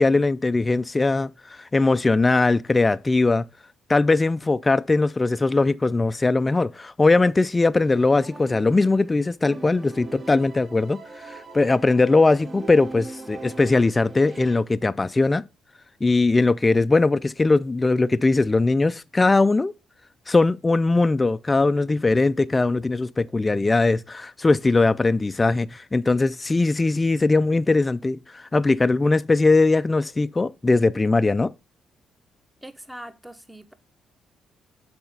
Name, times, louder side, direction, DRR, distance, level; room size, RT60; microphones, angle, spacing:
voice 1, 0.0-3.5 3.9-15.5 16.0-19.7 20.3-31.5, left 3 dB, 20° left, 0.3 m, -20 dB
sound 1, 7.8-9.1 9.4-14.6, right 3 dB, 35° right, 1.2 m, -41 dB
voice 2, 32.6-33.7, right 1 dB, 5° right, 0.8 m, -41 dB
7.0 x 4.2 x 5.3 m
cardioid pair, 90°, 0 cm